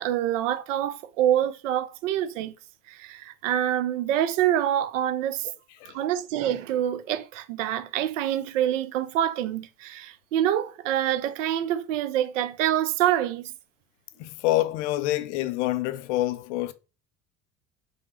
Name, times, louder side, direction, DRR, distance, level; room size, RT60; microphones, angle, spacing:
voice 1, 0.0-2.5 2.9-5.5 5.9-13.5, right 11 dB, 70° right, 0.5 m, -26 dB
voice 2, 14.2-16.7, left 16 dB, 60° left, 0.5 m, -26 dB
5.1 x 2.1 x 2.8 m
figure-of-eight pair, 60°, 40 cm